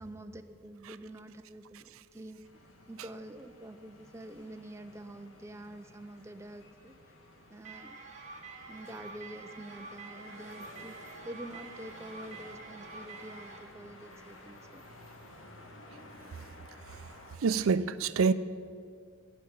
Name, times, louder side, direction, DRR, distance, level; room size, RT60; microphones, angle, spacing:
voice 1, 0.0-2.4 2.9-6.9 7.5-8.0 8.7-14.8, right 1 dB, 15° right, 0.4 m, -47 dB
sound 1, 2.4-17.4, left 1 dB, 80° left, 1.7 m, -53 dB
sound 2, 7.6-13.6, right 4 dB, 35° right, 1.7 m, -48 dB
voice 2, 17.4-18.3, right 5 dB, 85° right, 0.5 m, -26 dB
15.5 x 5.9 x 8.7 m
head